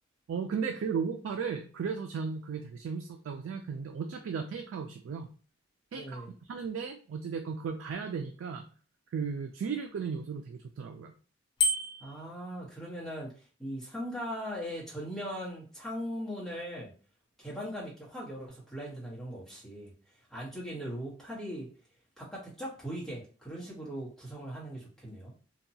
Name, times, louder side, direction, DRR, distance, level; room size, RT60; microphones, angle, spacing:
voice 1, 0.3-5.3 5.9-6.2 6.5-8.6 9.1-11.1, right 6 dB, 85° right, 4 dB, 0.3 m, -35 dB
voice 2, 5.9-6.3 12.0-16.9 17.4-19.9 20.3-21.7 22.2-25.3, equal, ahead, -7 dB, 0.9 m, -39 dB
Bicycle bell, 11.6-12.2, left 2 dB, 25° left, 0.3 m, -28 dB
2.8 x 2.2 x 2.6 m, 0.40 s
head